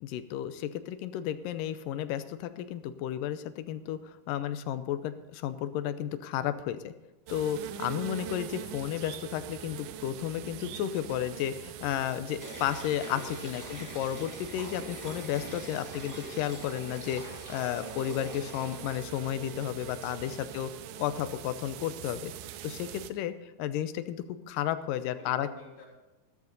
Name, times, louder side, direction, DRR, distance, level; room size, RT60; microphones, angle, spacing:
voice 1, 0.0-6.9 7.3-20.7 21.0-22.3 22.6-25.5, left 11 dB, 85° left, 12 dB, 2.3 m, -33 dB
sound 1, 7.3-23.1, right 11 dB, 90° right, 2.4 m, -43 dB
sound 2, 12.4-20.4, right 1 dB, 10° right, 0.9 m, -45 dB
voice 2, 24.8-25.9, left 3 dB, 70° left, -4 dB, 5.4 m, -53 dB
14.5 x 13.5 x 4.0 m, 1.1 s
omnidirectional pair, 3.9 m